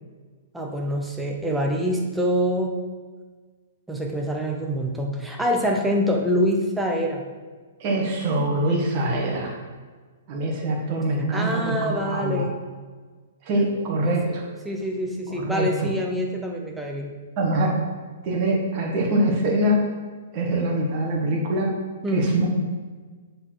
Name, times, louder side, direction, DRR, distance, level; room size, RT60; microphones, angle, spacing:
voice 1, 0.5-2.7 3.9-7.2 11.3-12.5 13.6-13.7 14.0-14.4 14.6-17.1 22.0-22.3, equal, 5° right, 0 dB, 0.7 m, -25 dB
voice 2, 7.8-9.5 10.3-12.5 13.4-14.4 15.3-15.9 17.4-17.7 18.2-19.8 20.3-21.7 22.1-22.5, right 1 dB, 30° right, -2 dB, 1.7 m, -24 dB
7.7 x 4.2 x 6.2 m, 1.4 s
hypercardioid pair, 165°, 0 cm